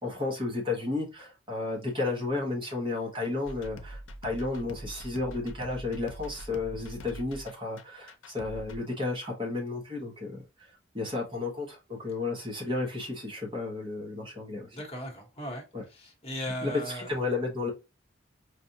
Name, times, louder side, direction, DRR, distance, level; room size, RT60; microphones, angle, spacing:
voice 1, 0.0-10.4 10.9-14.8 15.7-15.8 16.6-17.7, left 3 dB, 25° right, 1.1 m, -32 dB
sound 1, 3.5-8.8, equal, 85° left, 0.6 m, -43 dB
voice 2, 14.7-15.6 15.9-17.1, equal, 30° left, 1.2 m, -37 dB
5.0 x 2.5 x 2.8 m
head